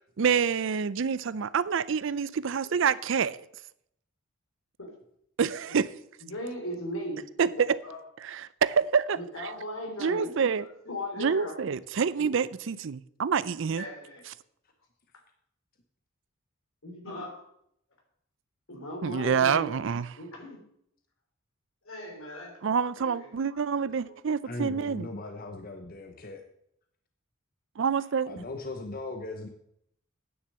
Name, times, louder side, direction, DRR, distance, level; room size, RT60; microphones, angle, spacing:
voice 1, 0.2-3.4 5.4-5.9 7.4-7.8 8.2-9.5 10.0-10.6 11.2-13.8 19.0-20.1 22.6-25.1 27.8-28.4, right 6 dB, 60° right, 18 dB, 0.5 m, -27 dB
voice 2, 6.2-8.0 9.1-11.6 12.2-12.3 13.7-14.2 16.8-17.4 18.7-19.7 20.2-20.6 21.9-22.7 23.0-24.1, equal, 75° left, 1 dB, 3.5 m, -38 dB
voice 3, 24.4-26.4 28.3-29.5, left 2 dB, 45° left, 4 dB, 0.9 m, -38 dB
9.6 x 6.7 x 7.6 m, 0.74 s
head